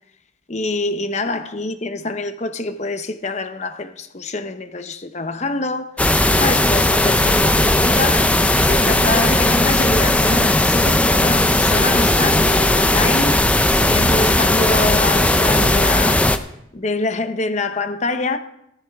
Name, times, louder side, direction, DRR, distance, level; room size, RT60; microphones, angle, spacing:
voice 1, 0.5-6.0 6.3-8.3 8.6-13.4 13.8-16.2 16.7-18.4, left 2 dB, 35° left, 0.8 m, -25 dB
sound 1, 6.0-16.4, left 1 dB, 5° left, 0.5 m, -16 dB
15.0 x 14.0 x 3.6 m
head